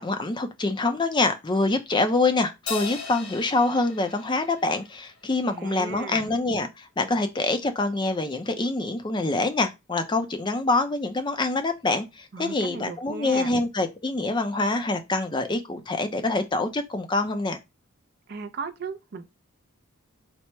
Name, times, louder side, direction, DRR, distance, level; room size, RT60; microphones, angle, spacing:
voice 1, 0.0-17.6, left 2 dB, 20° left, 0.4 m, -25 dB
Crash cymbal, 2.7-5.4, left 5 dB, 70° left, 1.0 m, -37 dB
voice 2, 5.4-6.3 12.3-13.5 18.3-19.3, right 4 dB, 45° right, 0.4 m, -36 dB
4.3 x 2.0 x 4.4 m
head